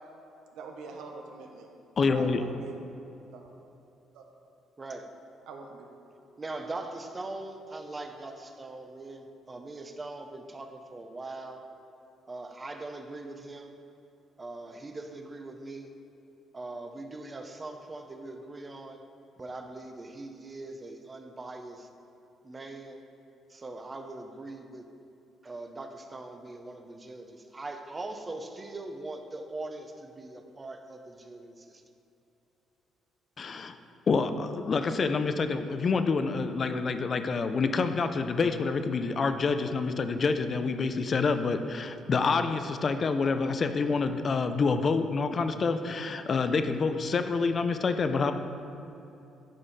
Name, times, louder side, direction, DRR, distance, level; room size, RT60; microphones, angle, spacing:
voice 1, 0.5-1.7 2.1-2.8 3.3-3.5 4.1-4.2 5.5-5.9, right 4 dB, 85° right, 2 dB, 1.0 m, -44 dB
voice 2, 2.0-2.4 33.4-33.7 34.1-48.3, left 4 dB, 40° left, 8 dB, 0.5 m, -27 dB
voice 3, 6.4-11.7 12.3-13.8 14.4-15.9 16.5-19.0 19.4-21.9 22.4-23.0 23.5-24.9 25.4-31.8, right 2 dB, 25° right, 5 dB, 0.7 m, -41 dB
9.9 x 5.5 x 4.1 m, 2.8 s
cardioid pair, 100°, 0 cm